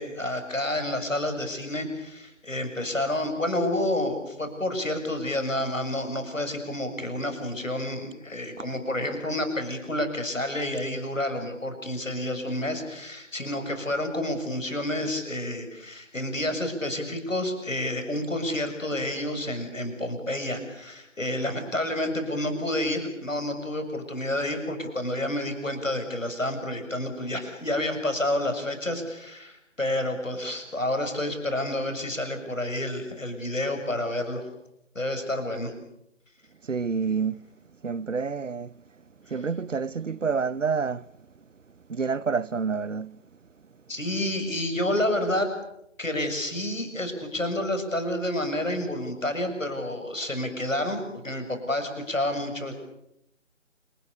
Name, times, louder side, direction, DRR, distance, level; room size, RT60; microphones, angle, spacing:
voice 1, 0.0-34.5 35.0-35.7 39.3-39.5 43.9-45.5 46.0-52.7, left 1 dB, 80° left, 6.9 m, -29 dB
voice 2, 36.7-37.4 37.8-38.7 39.3-41.0 41.9-43.1, right 5 dB, 75° right, 0.9 m, -28 dB
28.5 x 19.0 x 8.4 m
figure-of-eight pair, 155°, 38 cm